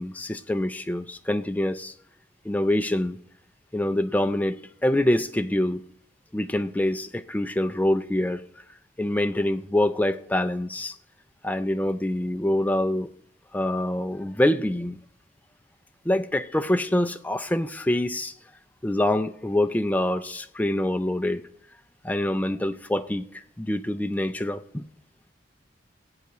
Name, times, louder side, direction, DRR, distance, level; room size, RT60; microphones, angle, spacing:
voice 1, 0.0-1.9 2.4-3.2 3.7-5.8 6.3-8.4 9.0-11.0 11.4-13.1 13.5-15.0 16.1-18.3 18.8-21.4 22.0-24.9, left 1 dB, 10° left, 9 dB, 0.3 m, -25 dB
19.5 x 8.2 x 3.0 m, 0.70 s
head